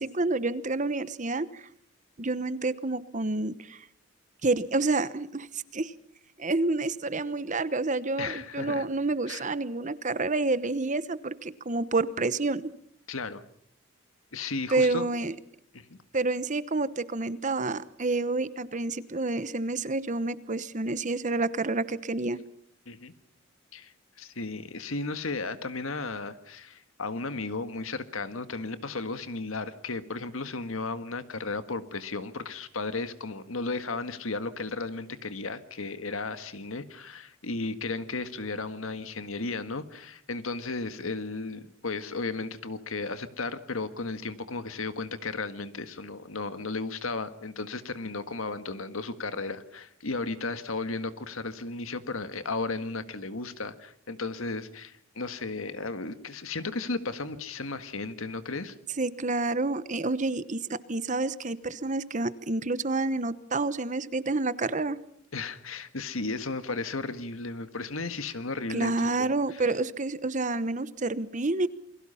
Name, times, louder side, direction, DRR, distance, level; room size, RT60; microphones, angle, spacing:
voice 1, 0.0-1.7 2.2-3.9 4.4-5.9 6.4-12.7 14.7-15.3 16.1-22.4 59.0-65.0 68.7-71.7, right 3 dB, 35° right, 15 dB, 1.0 m, -29 dB
voice 2, 8.2-8.8 9.3-9.4 13.1-13.4 14.3-15.1 15.7-16.0 22.8-23.1 23.7-58.7 65.3-69.6, left 3 dB, 80° left, 11 dB, 1.7 m, -34 dB
28.5 x 23.0 x 5.7 m, 0.64 s
head